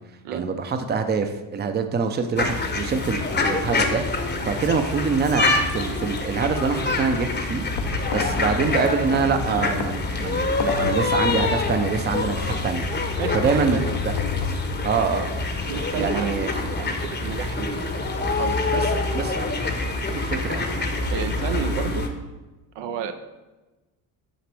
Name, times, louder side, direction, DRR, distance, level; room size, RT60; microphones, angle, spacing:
voice 1, 0.3-4.0 4.5-5.5 5.7-7.6 8.1-13.8 14.8-15.3 16.0-16.5 18.7-18.8 19.1-19.4 20.1-20.6, right 5 dB, 20° right, 7 dB, 0.6 m, -25 dB
sound 1, 2.4-22.1, left 3 dB, 20° left, 0.9 m, -26 dB
sound 2, 7.7-14.9, left 4 dB, 70° left, 0.8 m, -34 dB
voice 2, 13.2-14.0 15.7-16.4 16.7-17.9 18.4-18.6 21.1-22.0 22.8-23.1, right 8 dB, 65° right, 8 dB, 0.7 m, -31 dB
7.7 x 5.0 x 3.4 m, 1.1 s
supercardioid pair, 75°, 47 cm